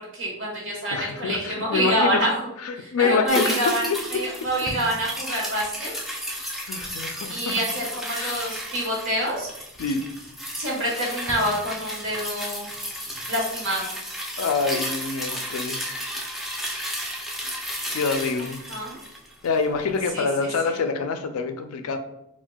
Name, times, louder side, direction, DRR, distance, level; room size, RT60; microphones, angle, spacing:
voice 1, 0.1-2.5 2.8-3.8 4.1-5.9 7.3-9.5 10.6-12.7 13.3-13.9 18.7-19.0 20.1-20.3, right 1 dB, 65° right, -3 dB, 1.2 m, -26 dB
voice 2, 0.9-2.3 2.6-4.0 6.6-7.5 8.2-8.5 9.8-10.0 14.4-16.0 17.9-18.6 19.4-22.0, left 4 dB, 85° left, 8 dB, 0.4 m, -26 dB
sound 1, 3.3-19.8 20.1-20.2, equal, ahead, 0.4 m, -33 dB
4.3 x 2.2 x 2.2 m, 0.82 s
head